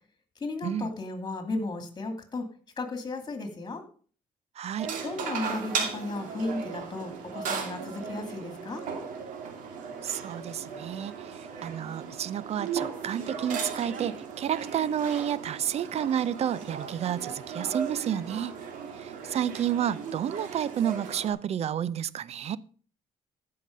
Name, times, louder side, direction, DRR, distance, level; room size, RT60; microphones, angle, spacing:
voice 1, 0.4-2.5 2.8-3.8 5.0-8.8, left 2 dB, 30° left, 2.7 m, -34 dB
voice 2, 4.6-4.9 10.0-18.5 18.9-22.6, right 9 dB, 55° right, 0.6 m, -30 dB
sound 1, 4.8-21.3, right 6 dB, 85° right, 2.3 m, -37 dB
14.5 x 5.9 x 5.3 m
cardioid pair, 100°, 13 cm